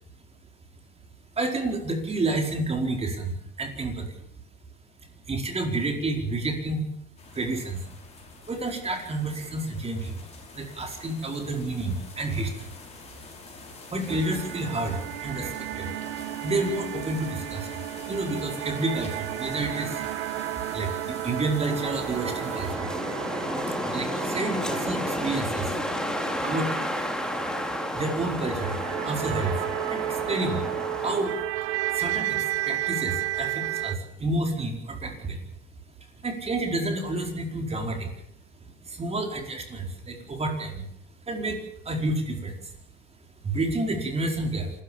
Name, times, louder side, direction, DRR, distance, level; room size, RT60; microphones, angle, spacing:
voice 1, 1.4-4.2 5.3-6.8 7.3-7.8 8.5-10.2 10.5-12.7 13.9-15.9 16.4-17.7 18.1-20.1 20.7-22.9 23.9-25.7 26.4-26.7 27.9-28.8 29.0-29.6 29.9-30.6 31.0-31.3 31.9-35.4 36.2-38.1 38.9-40.9 41.3-42.7 43.4-44.7, right 2 dB, 20° right, 3 dB, 4.6 m, -29 dB
sound 1, 7.2-22.7, left 3 dB, 20° left, 6.1 m, -45 dB
sound 2, 14.1-34.0, right 15 dB, 90° right, 1.0 m, -33 dB
Wind, 21.5-31.4, left 1 dB, ahead, 2.6 m, -31 dB
27.0 x 14.0 x 7.3 m, 0.74 s
supercardioid pair, 130°, 33 cm